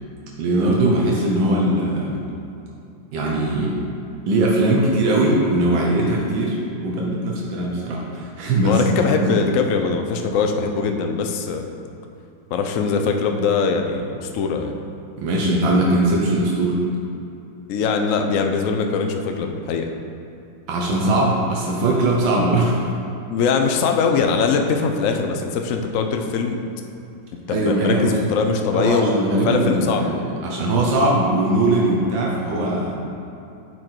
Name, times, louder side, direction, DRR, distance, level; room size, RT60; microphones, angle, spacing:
voice 1, 0.4-2.2 3.1-3.7 4.3-9.4 15.2-16.8 20.7-22.7 27.5-28.2 28.7-33.0, right 1 dB, 85° right, -3 dB, 1.7 m, -20 dB
voice 2, 8.6-11.7 12.5-14.8 17.7-19.9 23.3-26.6 27.5-29.2 29.4-30.1, left 5 dB, 75° left, 4 dB, 0.7 m, -22 dB
8.7 x 4.6 x 4.4 m, 2.8 s
omnidirectional pair, 2.0 m